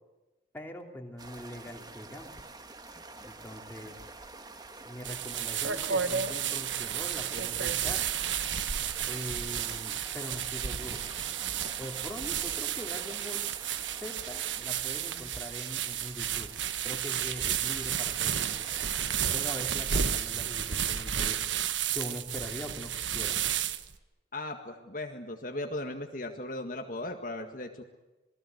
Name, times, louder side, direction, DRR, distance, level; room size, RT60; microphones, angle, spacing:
voice 1, 0.5-2.4 3.2-4.0 4.8-8.1 9.1-11.0 11.8-13.5 14.0-16.5 16.8-18.6 19.3-21.4 21.9-23.4, equal, 10° left, 1 dB, 3.2 m, -42 dB
sound 1, 1.2-19.7, right 2 dB, 20° right, 1.4 m, -48 dB
sound 2, 5.0-24.0, right 9 dB, 80° right, 1.2 m, -32 dB
voice 2, 24.3-27.8, left 1 dB, 45° left, 3 dB, 1.9 m, -37 dB
27.5 x 20.5 x 8.0 m, 1.1 s
head